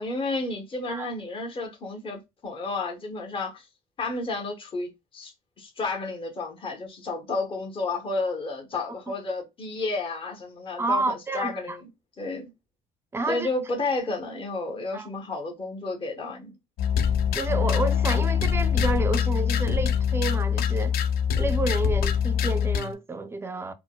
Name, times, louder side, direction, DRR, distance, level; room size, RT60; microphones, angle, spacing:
voice 1, 0.0-3.7 4.0-11.9 12.2-12.5 13.3-16.5, left 3 dB, 30° left, 0.9 m, -31 dB
voice 2, 10.8-11.8 13.1-13.5 14.9-15.1 17.3-20.9 21.4-23.7, right 3 dB, 15° right, 0.4 m, -29 dB
sound 1, 16.8-22.9, left 7 dB, 65° left, 0.4 m, -24 dB
4.3 x 2.1 x 2.2 m
cardioid pair, 110°, 17 cm